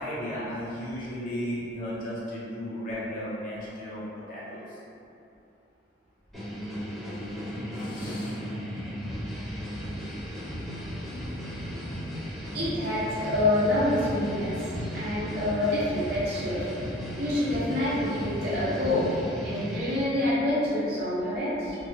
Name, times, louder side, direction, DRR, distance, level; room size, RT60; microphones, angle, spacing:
voice 1, 0.0-4.8 7.7-8.4, equal, 45° left, -9 dB, 0.6 m, -35 dB
sound 1, 6.3-20.0, equal, ahead, 0.7 m, -35 dB
voice 2, 12.5-14.6 14.9-16.7 17.2-21.8, left 1 dB, 60° right, -10 dB, 0.6 m, -27 dB
2.6 x 2.2 x 2.7 m, 2.6 s
head